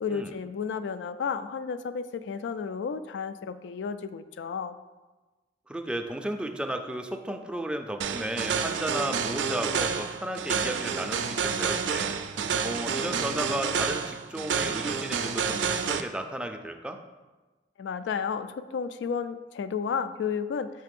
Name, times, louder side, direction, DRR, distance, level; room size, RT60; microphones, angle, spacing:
voice 1, 0.0-4.8 17.8-20.7, left 6 dB, 75° left, 13 dB, 0.3 m, -32 dB
voice 2, 5.7-17.0, right 1 dB, 5° right, 5 dB, 0.3 m, -34 dB
sound 1, 8.0-16.0, right 6 dB, 80° right, 0.4 m, -29 dB
5.6 x 3.3 x 5.2 m, 1.2 s
head